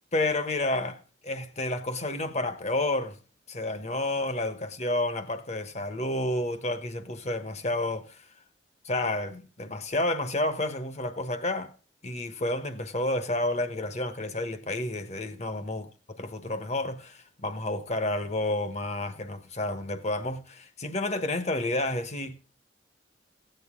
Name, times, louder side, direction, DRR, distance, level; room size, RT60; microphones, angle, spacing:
voice 1, 0.1-3.2 3.5-8.2 8.8-11.7 12.0-15.9 16.2-22.3, left 1 dB, 35° left, 1.1 m, -30 dB
16.5 x 7.9 x 3.7 m
head